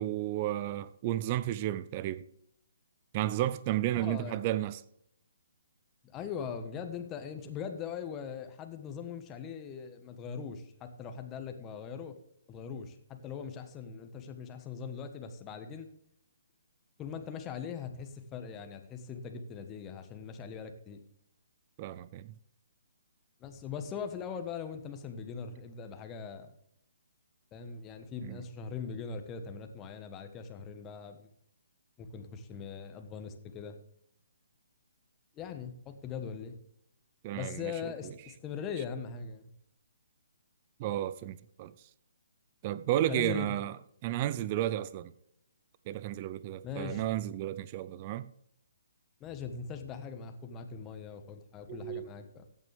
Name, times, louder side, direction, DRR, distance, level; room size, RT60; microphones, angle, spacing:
voice 1, 0.0-2.2 3.1-4.8 21.8-22.3 28.2-28.4 37.2-37.9 40.8-41.7 42.6-43.7 44.0-45.1 45.9-48.3 51.7-52.1, right 13 dB, 35° right, 0.6 m, -32 dB
voice 2, 3.9-4.4 6.0-12.2 12.5-15.9 17.0-21.0 23.4-26.5 27.5-31.3 32.0-33.8 35.3-36.6 37.3-39.5 43.1-43.5 46.6-47.0 49.2-52.5, left 6 dB, 20° left, 1.3 m, -41 dB
15.0 x 9.1 x 3.5 m
figure-of-eight pair, 135°, 0 cm